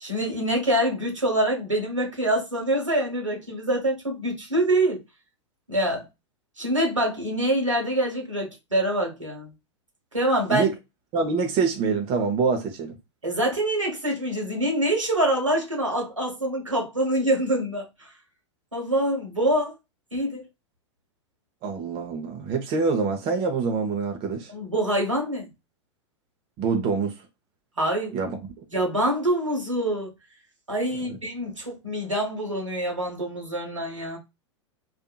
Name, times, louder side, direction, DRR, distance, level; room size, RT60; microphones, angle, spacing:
voice 1, 0.0-5.0 5.7-6.0 6.6-9.5 10.1-10.6 13.2-18.1 18.7-19.7 20.1-20.5 24.5-25.5 27.8-28.1 28.7-30.1 30.7-34.2, right 1 dB, 90° right, 1.2 m, -25 dB
voice 2, 11.1-12.9 21.6-24.5 26.6-27.2 28.1-28.5, right 5 dB, 35° right, 0.6 m, -25 dB
2.7 x 2.5 x 2.2 m
figure-of-eight pair, 95°, 16 cm